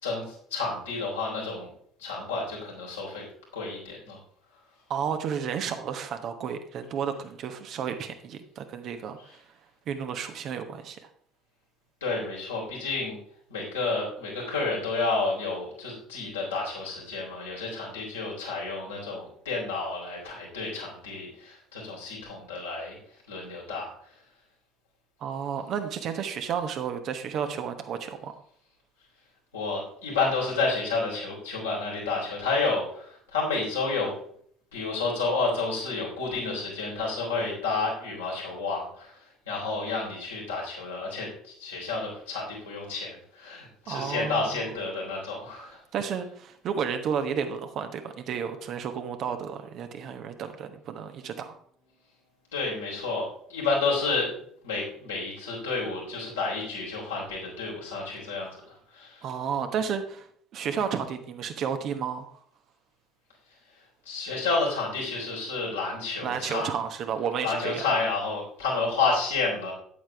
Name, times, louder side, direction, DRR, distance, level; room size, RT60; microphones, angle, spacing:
voice 1, 0.0-1.7 2.0-3.2 3.5-4.2 12.0-13.2 13.5-23.0 23.3-24.1 29.5-34.1 34.7-45.8 52.5-54.3 54.6-59.3 64.1-66.7 67.4-69.7, left 3 dB, 80° left, -5 dB, 3.5 m, -30 dB
voice 2, 4.9-9.4 9.9-11.0 25.2-28.3 43.9-44.6 45.9-51.6 59.2-60.3 60.5-62.3 66.2-67.8, right 7 dB, 50° right, 7 dB, 1.1 m, -32 dB
9.1 x 8.5 x 3.4 m, 0.62 s
figure-of-eight pair, 55°, 0 cm